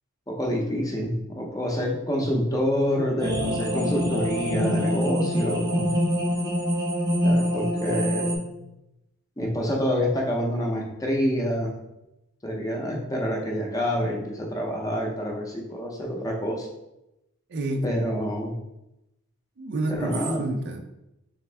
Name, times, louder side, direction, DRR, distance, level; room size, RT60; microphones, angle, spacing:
voice 1, 0.3-5.9 7.2-8.4 9.4-11.7 12.4-16.7 17.8-18.5 19.9-20.4, equal, 15° left, -1 dB, 0.6 m, -27 dB
sound 1, 3.2-8.4, equal, 20° right, 0.7 m, -25 dB
voice 2, 17.5-17.9 19.6-20.8, right 2 dB, 55° right, 4 dB, 0.5 m, -29 dB
3.5 x 3.4 x 3.3 m, 0.89 s
head